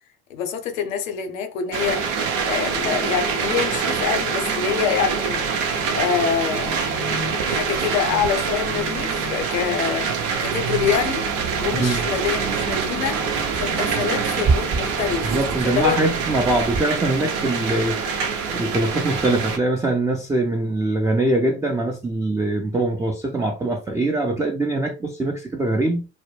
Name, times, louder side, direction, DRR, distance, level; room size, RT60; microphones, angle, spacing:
voice 1, 0.3-6.9 7.4-15.4 15.6-16.0, left 8 dB, 80° left, 0.6 m, -26 dB
sound 1, 1.7-19.6, right 5 dB, 75° right, 0.7 m, -25 dB
sound 2, 10.7-16.8, right 4 dB, 35° right, 0.7 m, -30 dB
voice 2, 11.7-12.1 15.2-18.0 18.5-26.1, right 2 dB, 10° right, 0.3 m, -22 dB
2.1 x 2.0 x 3.1 m
hypercardioid pair, 60°, 39 cm